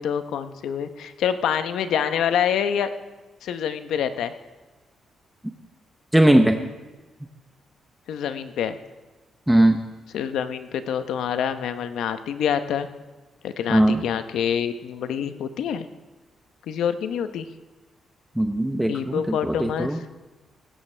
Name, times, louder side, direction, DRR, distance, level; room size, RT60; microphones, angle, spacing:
voice 1, 0.0-2.9 3.4-4.3 8.1-8.8 10.1-12.9 13.4-15.9 16.7-17.5 18.9-19.9, left 8 dB, 85° left, 10 dB, 0.8 m, -26 dB
voice 2, 6.1-6.6 9.5-9.8 13.7-14.0 18.4-20.0, right 1 dB, 5° right, 5 dB, 0.8 m, -19 dB
18.0 x 16.5 x 3.4 m, 1.2 s
cardioid pair, 105°, 0 cm